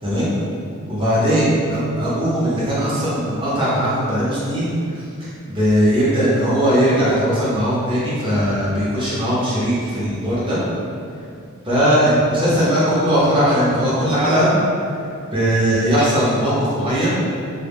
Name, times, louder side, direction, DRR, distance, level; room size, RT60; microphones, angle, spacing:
voice 1, 0.0-0.4 0.9-10.6 11.6-14.6 15.3-17.2, equal, 25° right, -9 dB, 0.7 m, -19 dB
2.1 x 2.0 x 3.4 m, 2.4 s
head